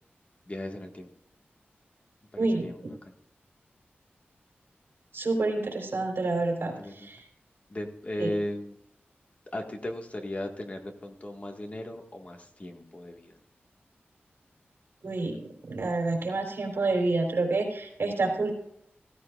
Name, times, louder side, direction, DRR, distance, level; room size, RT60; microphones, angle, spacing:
voice 1, 0.5-1.1 2.3-3.1 6.8-7.1 7.7-8.8 9.5-13.3, left 1 dB, 35° left, 3 dB, 1.8 m, -37 dB
voice 2, 2.4-2.7 5.1-7.2 8.2-8.3 15.0-18.5, right 3 dB, 70° right, 0 dB, 3.8 m, -28 dB
16.0 x 15.5 x 2.5 m, 0.74 s
wide cardioid pair, 85°, 4 cm